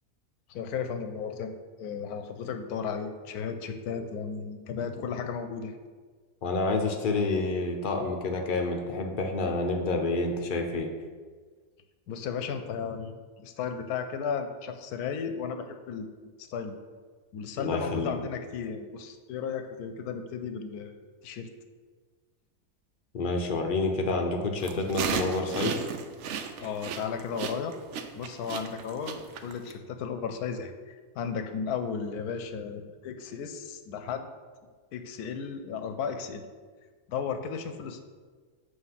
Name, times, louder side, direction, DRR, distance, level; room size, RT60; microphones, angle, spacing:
voice 1, 0.5-1.5 1.8-5.8 12.1-16.1 16.5-16.8 17.3-21.5 26.6-27.8 28.1-34.3 34.9-36.4 37.1-38.0, left 6 dB, 90° left, 8 dB, 1.1 m, -34 dB
voice 2, 6.4-10.9 17.6-18.2 23.1-25.8, left 3 dB, 50° left, 3 dB, 0.6 m, -28 dB
sound 1, 24.6-29.7, right 7 dB, 70° right, 0.7 m, -34 dB
7.7 x 3.0 x 5.6 m, 1.5 s
omnidirectional pair, 1.6 m